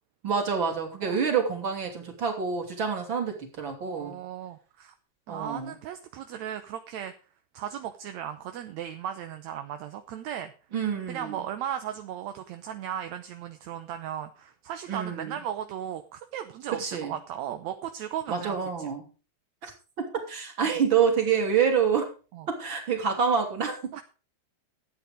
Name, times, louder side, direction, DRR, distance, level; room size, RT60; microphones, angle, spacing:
voice 1, 0.2-4.1 5.3-5.7 10.7-11.4 14.9-15.4 16.8-17.1 18.3-19.1 19.6-19.7 20.0-22.1 22.5-24.0, right 6 dB, 35° right, 3 dB, 3.4 m, -27 dB
voice 2, 3.8-4.9 5.3-7.1 7.5-10.5 11.1-18.9 22.3-22.5 23.9-24.0, right 10 dB, 70° right, 7 dB, 1.9 m, -36 dB
13.0 x 8.9 x 5.1 m, 0.35 s
omnidirectional pair, 3.8 m